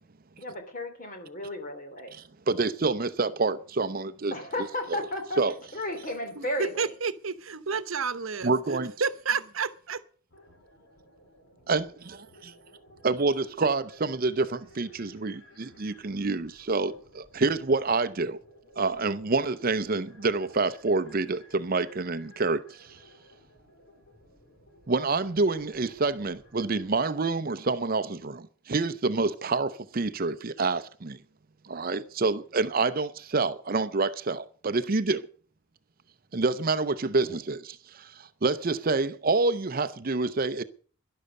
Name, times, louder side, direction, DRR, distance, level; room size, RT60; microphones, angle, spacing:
voice 1, 0.4-2.1 4.3-5.4 5.7-6.9, left 1 dB, 40° left, 3.0 m, -34 dB
voice 2, 2.1-4.3 4.9-5.0 5.4-5.5 8.4-8.9 11.7-11.9 13.0-18.4 18.8-23.0 24.9-31.2 31.6-35.3 36.3-40.6, right 3 dB, 40° right, 0.6 m, -27 dB
voice 3, 6.4-10.0, right 5 dB, 70° right, 0.9 m, -31 dB
sound 1, 10.3-27.0, left 1 dB, 55° left, 4.5 m, -57 dB
12.0 x 11.5 x 6.5 m
head